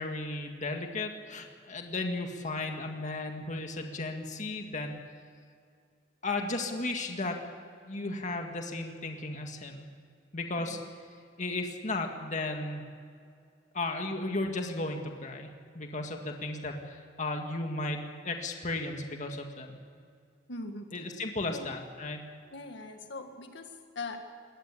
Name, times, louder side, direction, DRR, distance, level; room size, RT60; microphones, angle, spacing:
voice 1, 0.0-5.0 6.2-7.4 7.8-9.9 10.3-10.8 11.4-12.9 13.7-19.8 20.9-22.2, left 2 dB, 40° left, 3 dB, 2.0 m, -35 dB
voice 2, 10.6-10.9 20.5-21.1 21.5-21.7 22.5-24.2, left 3 dB, 65° left, 5 dB, 2.0 m, -41 dB
22.0 x 18.0 x 8.5 m, 2.3 s
head